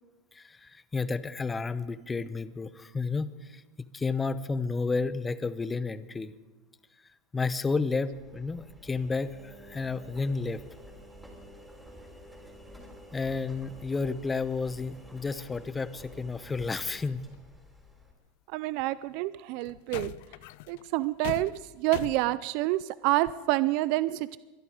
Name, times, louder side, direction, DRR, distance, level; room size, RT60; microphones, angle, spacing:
voice 1, 0.3-6.3 7.3-10.6 13.1-17.3, left 4 dB, 15° left, 14 dB, 0.8 m, -31 dB
Engine, 8.1-18.1, equal, 5° right, 3.7 m, -50 dB
sound 1, 17.3-17.4 18.9-19.2 19.6-22.3, left 17 dB, 65° left, 0.4 m, -41 dB
voice 2, 18.5-20.1 20.7-21.5 21.8-24.4, right 17 dB, 60° right, 17 dB, 0.4 m, -28 dB
24.0 x 11.0 x 5.1 m, 1.2 s
supercardioid pair, 115°, 0 cm